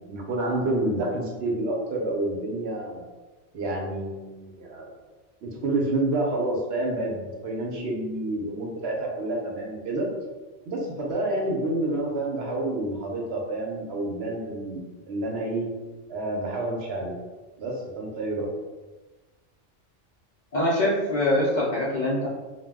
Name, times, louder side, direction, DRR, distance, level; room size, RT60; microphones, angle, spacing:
voice 1, 0.0-3.0 3.5-4.9 5.4-10.1 10.7-15.7 16.1-17.1 17.6-18.5, right 2 dB, 65° right, -1 dB, 0.8 m, -29 dB
voice 2, 20.5-22.3, left 1 dB, 60° left, -6 dB, 0.5 m, -23 dB
2.2 x 2.0 x 3.4 m, 1.2 s
omnidirectional pair, 1.2 m